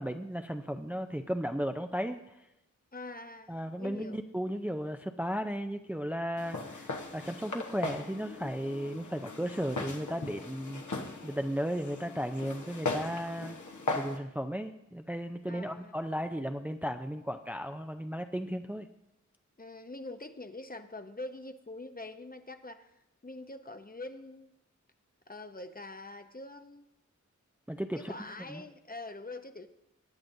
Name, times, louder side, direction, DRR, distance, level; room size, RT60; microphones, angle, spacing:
voice 1, 0.0-2.4 3.5-13.6 13.9-18.9 27.7-28.1 28.5-28.6, equal, 5° right, 6 dB, 0.5 m, -35 dB
voice 2, 2.9-4.2 15.5-16.0 19.6-22.9 23.2-24.5 25.3-26.8 27.9-29.7, left 2 dB, 30° left, 8 dB, 0.8 m, -44 dB
Walk footsteps, 6.4-14.2, left 3 dB, 75° left, 1.2 m, -39 dB
18.5 x 8.7 x 2.7 m, 0.88 s
wide cardioid pair, 40°, 30 cm